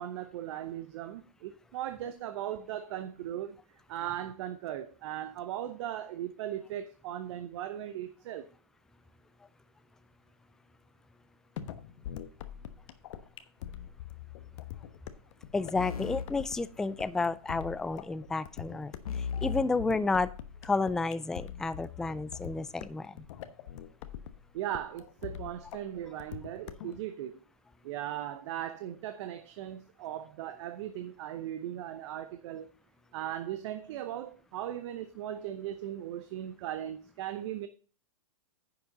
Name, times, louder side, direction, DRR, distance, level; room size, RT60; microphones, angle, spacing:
voice 1, 0.0-3.6 3.9-8.5 24.5-27.4 27.8-32.7 33.1-37.7, right 11 dB, 50° right, 0.9 m, -38 dB
sound 1, 11.6-27.0, left 11 dB, 55° left, 1.1 m, -44 dB
voice 2, 15.5-18.9 19.4-20.3 20.6-23.1, left 3 dB, 5° left, 0.3 m, -31 dB
sound 2, 15.7-17.4 19.0-20.8, left 6 dB, 80° left, 1.0 m, -38 dB
10.5 x 7.1 x 3.8 m
hypercardioid pair, 115°, 19 cm